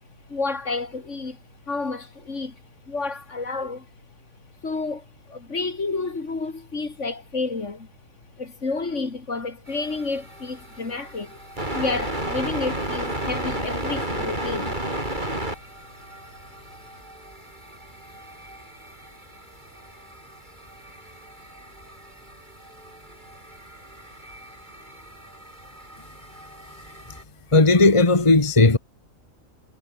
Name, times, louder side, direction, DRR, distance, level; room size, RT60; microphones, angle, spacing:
voice 1, 0.3-1.4 1.7-2.6 2.9-3.9 4.6-7.9 8.4-11.4 11.7-14.8, left 3 dB, 60° left, 2.9 m, -30 dB
sound 1, 9.7-27.2, right 1 dB, 35° right, 7.2 m, -34 dB
voice 2, 27.5-28.8, left 3 dB, 20° left, 1.8 m, -16 dB
omnidirectional pair, 1.4 m